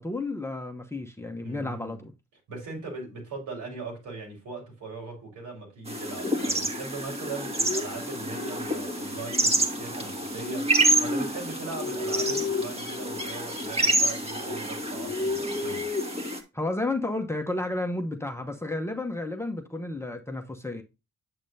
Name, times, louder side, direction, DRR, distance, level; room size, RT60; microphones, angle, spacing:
voice 1, 0.0-2.1 16.5-20.8, left 2 dB, 10° left, 0.9 m, -32 dB
voice 2, 1.4-2.1 2.5-15.8, right 3 dB, 80° right, 5.4 m, -39 dB
sound 1, 5.9-16.4, right 1 dB, 20° right, 1.8 m, -28 dB
7.6 x 7.3 x 2.7 m
cardioid pair, 90°, 30 cm